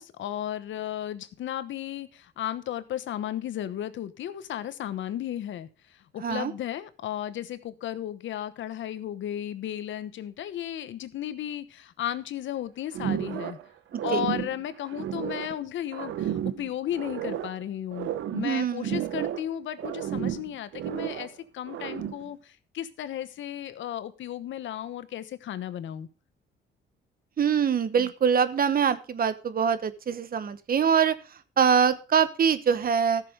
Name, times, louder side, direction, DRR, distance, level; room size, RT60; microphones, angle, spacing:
voice 1, 0.0-13.6 14.0-26.1 28.0-28.1, left 11 dB, 70° left, 13 dB, 1.1 m, -34 dB
voice 2, 6.2-6.5 13.9-14.2 18.4-19.0 27.4-31.1 31.6-33.2, right 7 dB, 45° right, 14 dB, 1.1 m, -24 dB
sound 1, 12.9-13.7 13.9-15.6 15.9-17.6 17.9-19.5 19.8-21.3 21.7-22.3, right 10 dB, 80° right, 0.9 m, -32 dB
14.0 x 6.9 x 5.0 m, 0.34 s
cardioid pair, 90°, 20 cm